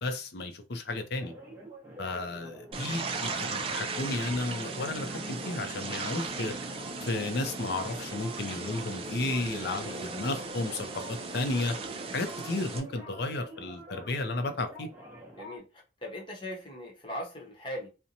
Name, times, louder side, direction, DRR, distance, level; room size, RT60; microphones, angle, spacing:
voice 1, 0.0-1.3 2.0-6.6 7.0-11.8 12.1-14.9, left 2 dB, 60° left, 0.5 m, -33 dB
sound 1, 1.2-15.6, equal, 15° right, 0.7 m, -47 dB
sound 2, 2.7-12.8, right 4 dB, 30° right, 0.4 m, -37 dB
voice 2, 9.7-10.1 15.4-17.9, equal, 25° left, 0.9 m, -40 dB
2.6 x 2.1 x 2.8 m
head